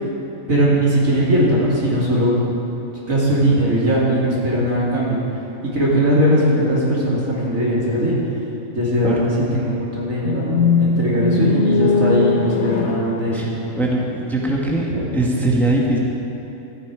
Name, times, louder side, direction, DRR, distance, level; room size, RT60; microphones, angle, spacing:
voice 1, 0.5-2.3 3.1-5.2 5.7-8.1 8.7-13.5 14.9-15.0, equal, 75° right, -6 dB, 3.1 m, -19 dB
sound 1, 10.2-14.4, left 4 dB, 60° left, 1.0 m, -20 dB
voice 2, 13.8-14.9 15.1-16.0, right 1 dB, ahead, -2 dB, 1.3 m, -20 dB
13.5 x 10.0 x 5.0 m, 2.9 s
omnidirectional pair, 1.4 m